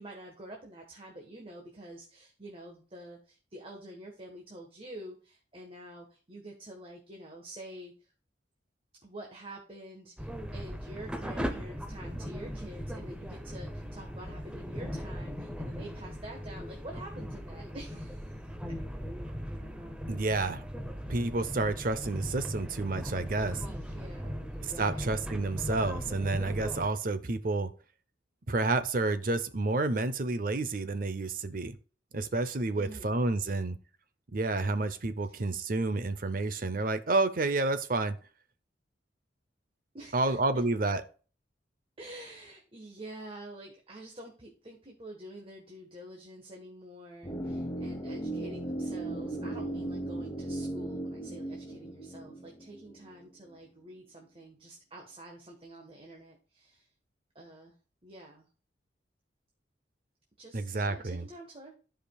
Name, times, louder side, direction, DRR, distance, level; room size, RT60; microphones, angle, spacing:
voice 1, 0.0-8.1 9.0-18.4 18.7-18.8 23.6-25.3 32.7-33.2 33.4-33.7 35.3-35.4 39.9-40.4 42.0-56.9 57.3-57.7 58.0-58.4 60.4-61.7, right 1 dB, 30° right, 1 dB, 1.3 m, -47 dB
sound 1, 10.2-26.9, equal, 5° right, 0.7 m, -39 dB
voice 2, 20.1-20.6 21.1-23.6 24.8-27.7 28.5-31.8 32.1-33.8 34.3-38.2 40.1-41.0 60.5-61.3, right 2 dB, 50° right, 11 dB, 0.7 m, -30 dB
sound 2, 47.2-53.3 53.5-53.6, right 1 dB, 20° left, 1.0 m, -37 dB
14.5 x 5.1 x 2.3 m, 0.37 s
head